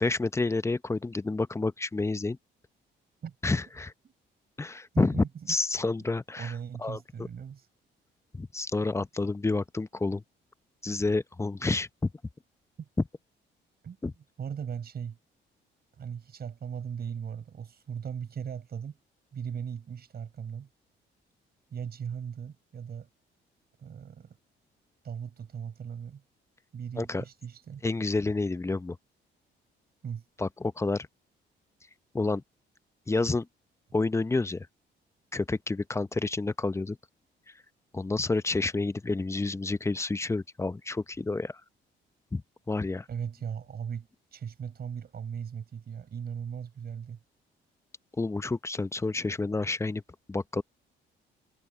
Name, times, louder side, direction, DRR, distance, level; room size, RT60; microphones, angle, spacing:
voice 1, 0.0-2.4 3.4-3.9 4.6-6.5 6.8-7.0 8.3-10.2 10.8-11.9 14.0-14.1 27.0-27.2 27.8-29.0 30.4-31.1 32.1-32.4 33.1-33.5 33.9-34.7 35.3-37.0 37.9-41.6 42.3-42.4 42.7-43.1 48.2-50.0 50.3-50.6, left 3 dB, 15° left, 0.7 m, -29 dB
voice 2, 4.9-5.6 6.4-7.7 12.8-12.9 13.8-15.2 16.0-19.0 19.3-20.7 21.7-23.1 23.8-24.4 25.0-26.2 26.7-27.8 30.0-30.2 43.1-47.2, right 7 dB, 50° right, 4.8 m, -38 dB
cardioid pair, 90°, 20 cm